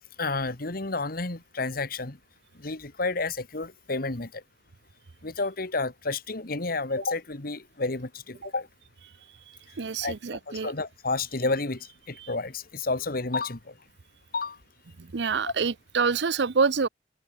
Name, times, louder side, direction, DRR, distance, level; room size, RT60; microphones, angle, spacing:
voice 1, 0.2-2.2 2.6-4.4 5.2-8.7 10.0-10.1 10.5-13.7 14.3-14.6 15.4-15.5, left 3 dB, 55° left, 1.8 m, -30 dB
voice 2, 9.8-10.7 15.1-16.9, right 5 dB, 70° right, 0.7 m, -26 dB
open air
head